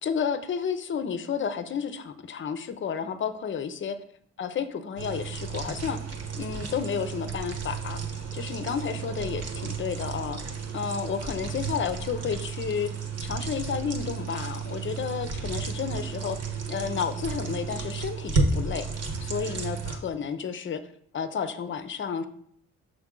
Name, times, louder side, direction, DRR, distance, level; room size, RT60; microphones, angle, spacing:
voice 1, 0.0-4.0 4.4-12.9 13.2-16.4 16.7-20.8 21.1-22.3, left 7 dB, 40° left, 11 dB, 0.6 m, -31 dB
sound 1, 5.0-20.0, right 5 dB, 55° right, 1.2 m, -32 dB
6.0 x 5.1 x 3.8 m, 0.67 s
cardioid pair, 90°, 30 cm